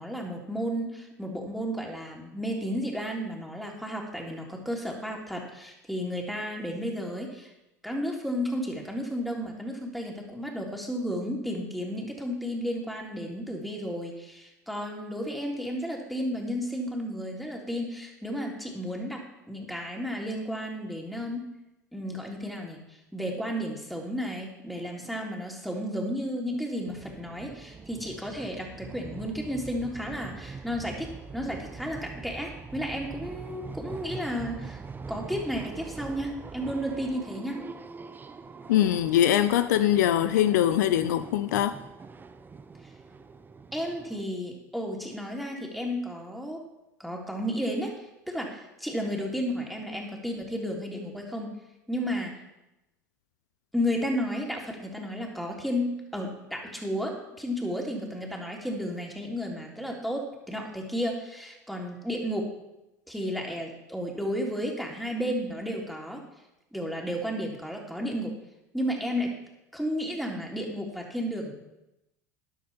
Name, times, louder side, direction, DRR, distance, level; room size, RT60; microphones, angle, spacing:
voice 1, 0.0-7.5 7.8-21.4 21.9-34.8 35.1-37.6 43.7-46.6 47.0-51.6 51.9-52.3 53.7-62.5 63.1-66.2 66.7-68.3 68.7-69.3 69.7-71.5, equal, ahead, 0 dB, 3.3 m, -33 dB
sound 1, 26.9-44.2, right 4 dB, 20° right, 0.9 m, -43 dB
voice 2, 38.7-41.7, left 11 dB, 70° left, 12 dB, 0.6 m, -22 dB
13.0 x 11.0 x 4.4 m, 0.92 s
hypercardioid pair, 75°, 10 cm